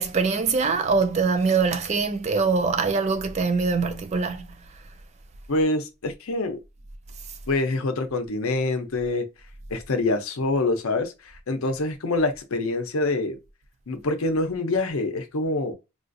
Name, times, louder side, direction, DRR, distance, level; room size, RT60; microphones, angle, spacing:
voice 1, 0.0-4.5, right 4 dB, 30° right, 0.3 m, -23 dB
voice 2, 5.5-6.6 7.5-9.3 9.7-13.4 13.9-15.7, left 2 dB, 75° left, 0.6 m, -25 dB
3.7 x 2.4 x 2.5 m
head